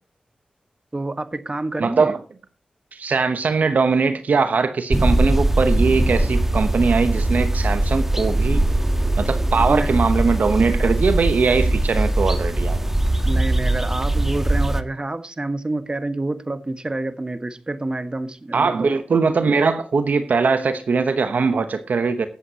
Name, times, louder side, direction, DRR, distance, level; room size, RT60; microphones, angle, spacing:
voice 1, 0.9-2.1 9.7-10.0 13.2-18.9, right 2 dB, 35° right, 1.5 m, -28 dB
voice 2, 1.8-2.2 2.9-8.6 9.2-12.9 18.5-22.3, right 4 dB, 75° right, 0.9 m, -21 dB
sound 1, 4.9-14.8, right 1 dB, 15° right, 1.3 m, -20 dB
20.5 x 7.9 x 2.9 m
cardioid pair, 45°, 3 cm